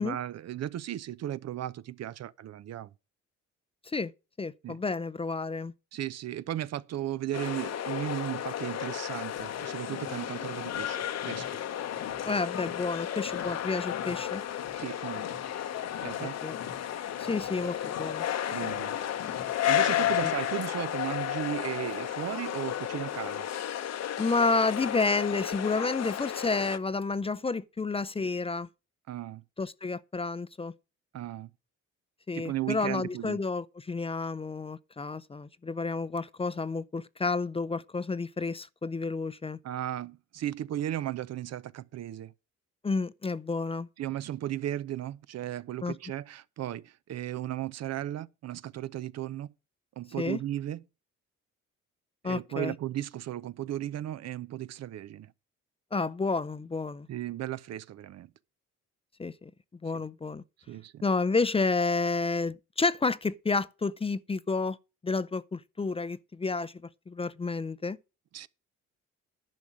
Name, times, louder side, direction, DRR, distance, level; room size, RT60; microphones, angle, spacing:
voice 1, 0.0-2.9 4.6-4.8 5.9-11.5 14.7-15.4 16.0-16.3 18.5-19.0 19.7-23.5 29.1-29.4 31.1-31.5 32.3-33.4 39.6-42.3 44.0-49.5 50.0-50.8 52.2-55.3 57.1-58.3 59.9-60.0 60.7-61.0 68.3-68.5, right 12 dB, 60° right, 0.6 m, -35 dB
voice 2, 4.4-5.7 12.2-14.4 16.2-16.6 17.2-18.2 20.2-20.3 24.2-28.7 29.6-30.7 32.3-39.6 42.8-43.9 45.8-46.0 50.2-50.4 52.2-52.7 55.9-57.1 59.2-59.5 59.8-60.4 61.0-64.8 65.0-66.7 67.1-68.0, left 3 dB, 20° left, 0.5 m, -30 dB
sound 1, 7.3-26.8, left 11 dB, 60° left, 0.9 m, -33 dB
Car, 9.3-20.4, left 9 dB, 80° left, 1.4 m, -47 dB
10.5 x 5.0 x 7.3 m
cardioid pair, 90°, 30 cm